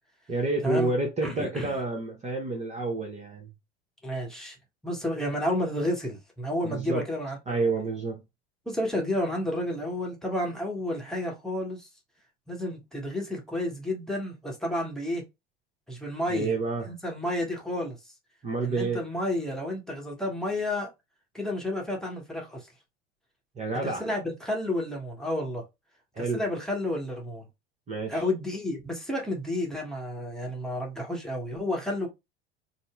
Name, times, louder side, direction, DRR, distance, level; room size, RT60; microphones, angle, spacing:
voice 1, 0.3-3.5 6.6-7.0 7.5-8.2 16.3-16.9 18.4-19.0 23.6-24.1 26.1-26.4 27.9-28.2, right 3 dB, 20° right, 0.9 m, -29 dB
voice 2, 1.2-1.7 4.0-4.6 4.8-7.7 8.7-11.9 12.5-15.2 15.9-16.5 16.9-18.0 18.6-20.9 21.3-22.7 23.8-25.6 26.2-27.4 28.1-32.1, left 1 dB, ahead, 1.2 m, -31 dB
4.1 x 2.1 x 3.6 m
figure-of-eight pair, 75°, 32 cm